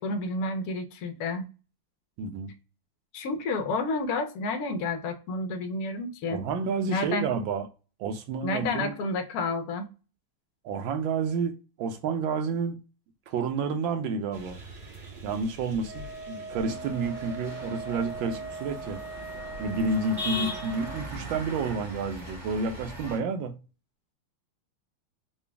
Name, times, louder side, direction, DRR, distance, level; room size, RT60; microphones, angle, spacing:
voice 1, 0.0-1.5 3.1-6.4 6.9-7.3 8.4-9.9, left 2 dB, 80° left, 0.8 m, -30 dB
voice 2, 2.2-2.5 6.3-7.7 8.0-8.9 10.6-12.8 13.3-14.6 15.2-19.0 19.6-23.6, right 4 dB, 75° right, 1.4 m, -30 dB
sound 1, 14.3-20.5, right 1 dB, 55° right, 1.5 m, -47 dB
Wind instrument woodwind instrument, 15.8-21.1, right 3 dB, 20° left, 0.5 m, -40 dB
sound 2, 16.7-23.2, left 1 dB, 35° right, 0.8 m, -39 dB
4.0 x 2.3 x 3.3 m
omnidirectional pair, 2.3 m